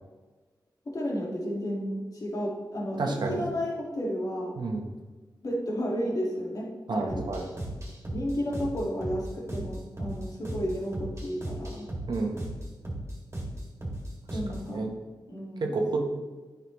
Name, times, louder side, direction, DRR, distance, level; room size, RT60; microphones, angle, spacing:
voice 1, 0.9-4.6 5.4-7.3 8.1-11.9 14.3-14.9 15.3-15.7, equal, 50° left, -2 dB, 2.0 m, -32 dB
voice 2, 3.0-3.5 4.6-4.8 6.9-7.5 12.1-12.4 14.7-14.9 15.6-16.0, right 3 dB, 70° right, 3 dB, 1.0 m, -29 dB
sound 1, 7.1-14.7, right 1 dB, 35° right, 2.3 m, -37 dB
9.1 x 5.7 x 3.1 m, 1.3 s
cardioid pair, 50°, 8 cm